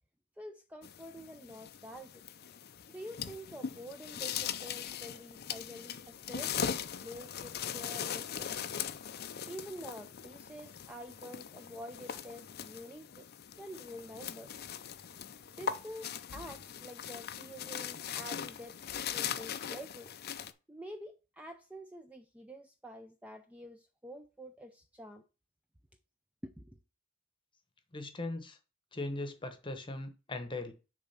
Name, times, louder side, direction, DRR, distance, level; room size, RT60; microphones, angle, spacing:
voice 1, 0.4-2.2 2.9-8.5 9.5-13.3 13.6-14.5 15.5-20.1 20.7-25.2 26.4-26.8, equal, 5° right, 0.4 m, -48 dB
sound 1, 0.8-20.5, left 8 dB, 45° left, 0.5 m, -40 dB
voice 2, 27.9-28.6 28.9-30.7, left 2 dB, 20° left, 1.0 m, -39 dB
6.7 x 3.6 x 5.5 m
head